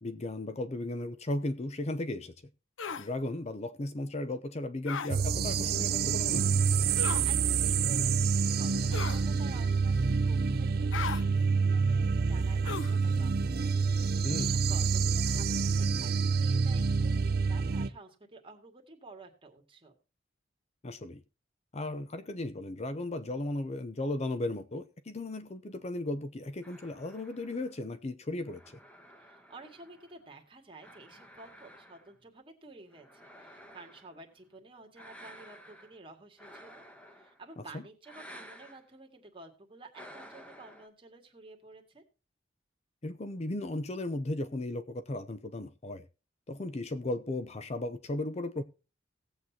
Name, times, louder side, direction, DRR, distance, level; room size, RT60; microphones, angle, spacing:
voice 1, 0.0-2.3 3.0-6.5 14.2-14.5 20.8-21.2 21.7-28.8 37.7-37.8 43.0-46.0 46.5-48.6, left 2 dB, 35° left, 0.6 m, -36 dB
sound 1, 2.8-3.1 4.9-5.1 7.0-7.3 8.9-9.3 10.9-11.2 12.6-13.0, left 6 dB, 85° left, 0.6 m, -36 dB
sound 2, 5.1-17.9, right 5 dB, 55° right, 0.5 m, -27 dB
voice 2, 7.2-20.0 29.2-36.8 37.1-42.0, right 3 dB, 30° right, 2.2 m, -52 dB
sound 3, 26.6-30.3 30.8-32.3 32.9-34.2 35.0-36.0 36.4-37.6 38.0-38.8 39.9-40.9, equal, 5° left, 1.3 m, -53 dB
18.0 x 7.9 x 2.8 m
head